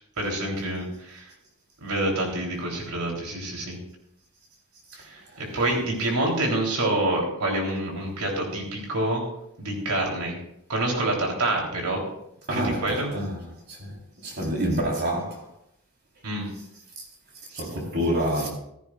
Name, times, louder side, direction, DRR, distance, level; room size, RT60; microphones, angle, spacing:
voice 1, 0.2-1.3 1.8-3.8 5.1-9.2 9.6-10.4 10.7-12.0 12.5-13.1 16.2-16.5, right 1 dB, 90° right, 3.7 m, -27 dB
voice 2, 12.5-13.9 14.2-15.4 17.0-17.1 17.5-18.5, equal, 50° right, 4.1 m, -28 dB
16.0 x 14.5 x 2.5 m
head